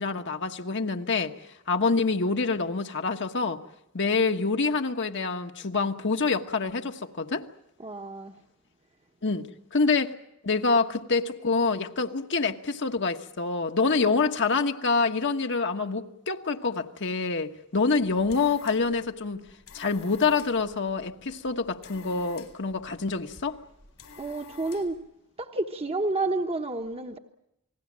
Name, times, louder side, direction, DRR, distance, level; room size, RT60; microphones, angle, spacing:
voice 1, 0.0-1.3 1.7-3.6 3.9-7.5 9.2-9.4 9.7-10.1 10.4-19.4 19.7-23.6, left 4 dB, 60° left, 1.3 m, -26 dB
voice 2, 7.8-8.4 24.2-25.0 25.4-27.2, right 2 dB, 30° right, 1.1 m, -30 dB
sound 1, 17.9-25.1, left 5 dB, 80° left, 4.1 m, -51 dB
29.0 x 20.0 x 7.4 m
head